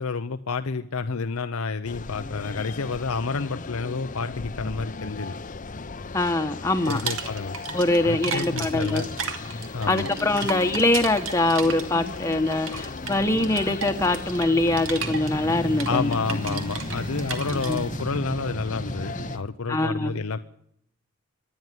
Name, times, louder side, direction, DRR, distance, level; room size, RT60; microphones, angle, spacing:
voice 1, 0.0-5.3 6.9-7.6 8.0-9.1 9.7-10.1 10.4-10.5 15.8-20.4, left 4 dB, 80° left, 9 dB, 0.7 m, -29 dB
sound 1, 1.9-19.4, left 3 dB, 35° left, 0.7 m, -37 dB
voice 2, 6.1-7.0 7.7-9.1 9.9-16.1 16.5-16.6 17.6-17.8 19.7-20.2, left 2 dB, 15° left, 5 dB, 1.2 m, -23 dB
sound 2, 6.8-8.0 8.2-17.8, right 5 dB, 65° right, 2.6 m, -34 dB
sound 3, 13.0-19.4, right 1 dB, 25° right, 1.3 m, -36 dB
25.0 x 11.0 x 9.3 m, 0.71 s
head